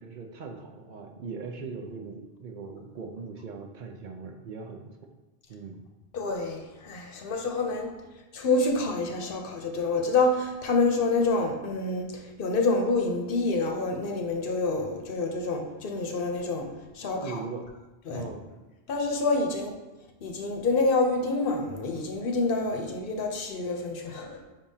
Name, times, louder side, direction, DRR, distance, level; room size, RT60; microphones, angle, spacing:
voice 1, 0.0-5.0 5.5-5.8 17.0-17.7 18.1-18.5, right 4 dB, 55° right, 3 dB, 0.6 m, -40 dB
voice 2, 6.1-7.9 8.3-16.7 16.9-17.4 18.1-18.2 18.9-19.7 20.2-24.4, left 3 dB, 60° left, 3 dB, 0.8 m, -27 dB
5.5 x 3.5 x 2.7 m, 1.2 s
omnidirectional pair, 1.1 m